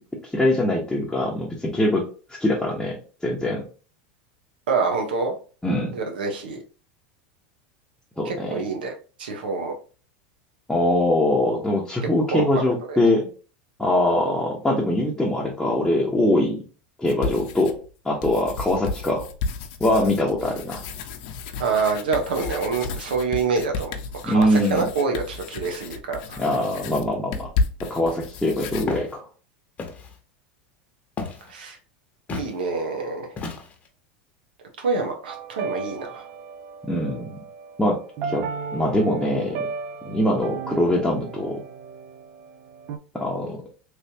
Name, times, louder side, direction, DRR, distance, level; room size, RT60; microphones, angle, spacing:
voice 1, 0.3-2.0 2.4-3.0 3.2-3.6 5.6-6.0 8.2-8.6 10.7-13.3 13.8-16.6 17.0-17.8 18.0-19.2 19.8-20.8 24.2-24.8 26.4-27.5 27.9-29.2 36.9-37.4 37.8-38.0 38.3-38.4 38.7-39.7 40.0-41.6 43.1-43.6, left 1 dB, 5° left, -4 dB, 0.9 m, -22 dB
voice 2, 4.7-5.3 5.9-6.6 8.2-8.9 9.2-9.7 12.3-12.4 12.9-13.0 21.6-24.0 24.2-26.4 31.5-31.8 32.3-33.3 34.8-36.3, right 4 dB, 90° right, 3 dB, 1.0 m, -26 dB
sound 1, 17.1-17.9 18.2-28.9, left 4 dB, 65° left, 0.6 m, -32 dB
Walk footsteps, 28.9-29.1 29.8-30.2 31.2-31.5 32.3-32.5 33.4-33.9, left 4 dB, 30° left, 0.9 m, -32 dB
sound 2, 35.3-43.0, right 5 dB, 55° right, 0.5 m, -35 dB
3.3 x 3.0 x 2.8 m, 0.37 s
supercardioid pair, 110°, 5 cm